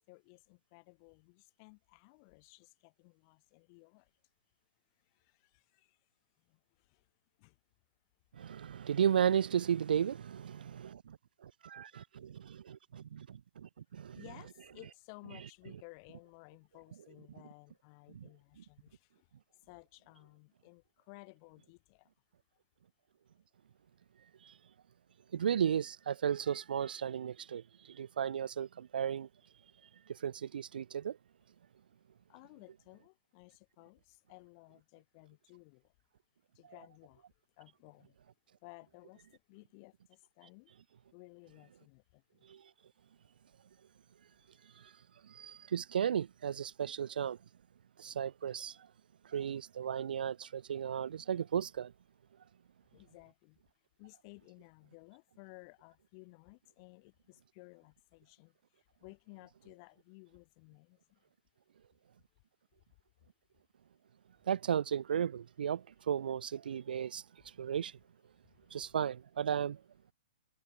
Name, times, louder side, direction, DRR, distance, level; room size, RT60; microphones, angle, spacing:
voice 1, 0.0-4.1 5.0-6.0 6.4-7.1 7.4-7.6 14.1-22.1 32.3-35.9 36.5-37.2 37.6-38.2 38.6-40.7 41.1-42.5 52.9-53.6 54.0-61.2 67.6-67.7 68.4-68.6, left 33 dB, 25° left, 4.3 m, -57 dB
voice 2, 8.3-11.2 11.4-14.2 18.1-18.2 24.4-24.5 25.3-29.3 30.1-31.2 42.5-42.6 44.8-44.9 45.2-47.4 48.0-48.9 49.2-51.9 64.5-67.2 67.6-68.0 68.7-69.8, right 8 dB, 60° right, 0.7 m, -35 dB
hypercardioid pair, 175°, 6 cm